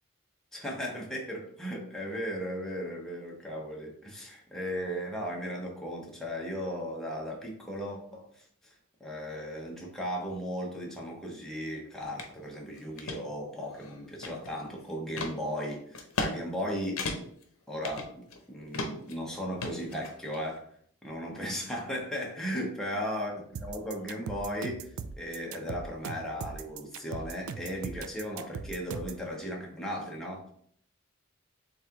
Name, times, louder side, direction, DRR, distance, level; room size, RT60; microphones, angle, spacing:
voice 1, 0.5-8.7 9.0-17.0 17.7-20.7 21.0-30.5, equal, ahead, -3 dB, 0.9 m, -36 dB
sound 1, 12.2-12.3 12.8-13.2 13.7-14.7 15.2-15.3 15.9-16.3 16.6-16.7 17.0-17.4 17.8-18.4 18.7-19.1 19.6-20.4, left 3 dB, 85° left, 0.8 m, -35 dB
sound 2, 23.5-29.2, right 5 dB, 75° right, 0.4 m, -39 dB
7.2 x 2.5 x 2.9 m, 0.64 s
head